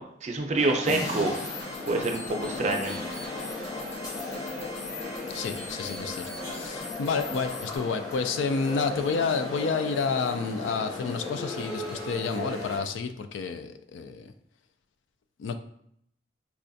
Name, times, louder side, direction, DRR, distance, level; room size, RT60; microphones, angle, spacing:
voice 1, 0.0-1.4 1.9-3.0, right 2 dB, 35° right, 3 dB, 0.4 m, -27 dB
sound 1, 0.6-12.8, left 2 dB, 20° left, 0.8 m, -36 dB
sound 2, 0.9-7.8, left 3 dB, 35° left, 1.3 m, -42 dB
voice 2, 5.3-6.3 6.5-14.3 15.4-15.6, left 5 dB, 80° left, 8 dB, 0.3 m, -30 dB
4.2 x 2.3 x 2.6 m, 0.72 s
head